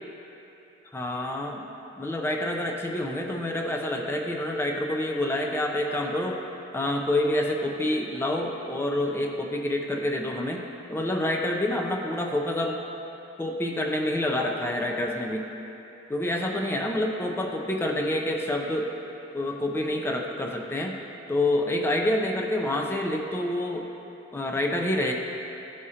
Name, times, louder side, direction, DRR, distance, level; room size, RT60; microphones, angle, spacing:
voice 1, 0.9-1.6 2.0-6.4 6.7-12.8 13.4-15.5 16.1-18.9 19.3-21.0 21.3-23.9 24.3-25.1, left 1 dB, 15° left, 1 dB, 0.5 m, -27 dB
13.0 x 4.9 x 2.8 m, 2.9 s
head